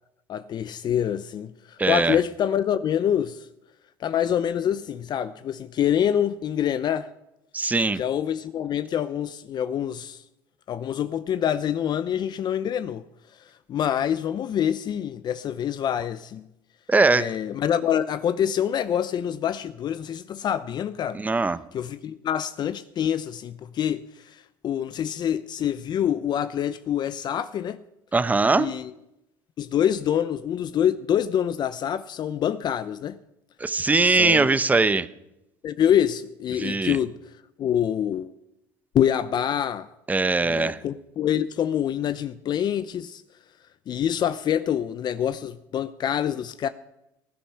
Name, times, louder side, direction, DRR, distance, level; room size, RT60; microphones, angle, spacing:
voice 1, 0.3-3.5 4.0-7.1 8.0-10.2 10.7-13.0 13.4-16.4 17.1-21.2 21.7-27.8 28.5-28.9 29.6-33.2 34.1-34.5 35.6-37.2 37.6-38.3 38.9-39.9 40.4-43.2 43.9-46.7, left 9 dB, 45° left, 0.7 m, -26 dB
voice 2, 1.8-2.2 7.5-8.0 16.9-17.3 21.1-21.6 28.1-28.7 33.6-35.1 36.6-37.0 40.1-40.8, right 3 dB, 15° right, 0.8 m, -21 dB
19.5 x 10.0 x 5.8 m
supercardioid pair, 95°, 10 cm